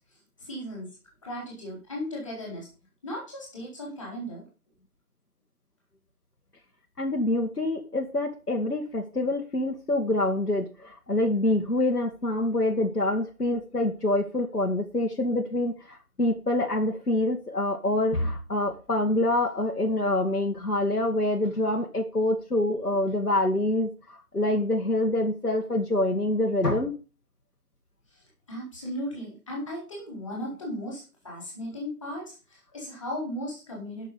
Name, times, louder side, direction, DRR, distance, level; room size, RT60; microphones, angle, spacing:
voice 1, 0.4-0.9 1.2-2.7 3.0-4.4 28.1-34.1, equal, 5° left, -15 dB, 2.1 m, -36 dB
voice 2, 7.0-26.9, left 1 dB, 90° left, 1 dB, 1.8 m, -26 dB
11.5 x 6.1 x 5.3 m, 0.33 s
figure-of-eight pair, 165°, 46 cm